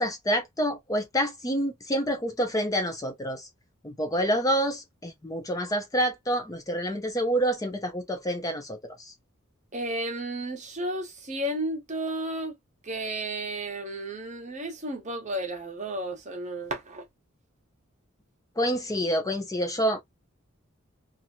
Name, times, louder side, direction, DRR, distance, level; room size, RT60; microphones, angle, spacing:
voice 1, 0.0-3.5 3.8-9.1 18.6-20.0, equal, 15° left, 0.6 m, -28 dB
voice 2, 9.7-12.6 12.8-17.1, right 1 dB, 35° right, 1.0 m, -33 dB
2.9 x 2.5 x 2.7 m
head